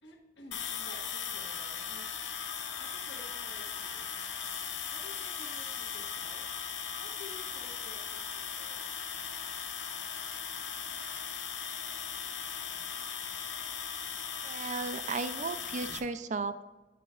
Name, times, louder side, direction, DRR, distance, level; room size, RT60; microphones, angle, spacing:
voice 1, 0.0-2.1 2.8-4.3 4.9-6.5 7.0-8.9, left 2 dB, 70° left, 0 dB, 1.2 m, -53 dB
sound 1, 0.5-16.0, left 7 dB, 85° left, 0.7 m, -38 dB
voice 2, 14.4-16.6, right 4 dB, 40° right, 11 dB, 0.4 m, -35 dB
10.5 x 7.0 x 2.4 m, 1.1 s
head